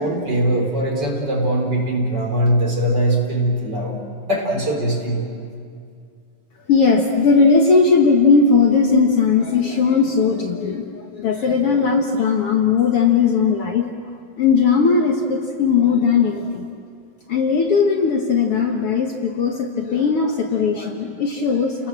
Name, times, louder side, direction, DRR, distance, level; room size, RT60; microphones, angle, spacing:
voice 1, 0.0-4.0 4.3-5.2, right 1 dB, 35° right, 0 dB, 4.3 m, -21 dB
voice 2, 6.7-13.9 14.4-16.7 17.3-21.9, left 5 dB, 55° left, 2 dB, 2.0 m, -18 dB
30.0 x 19.0 x 7.6 m, 2.3 s
omnidirectional pair, 3.4 m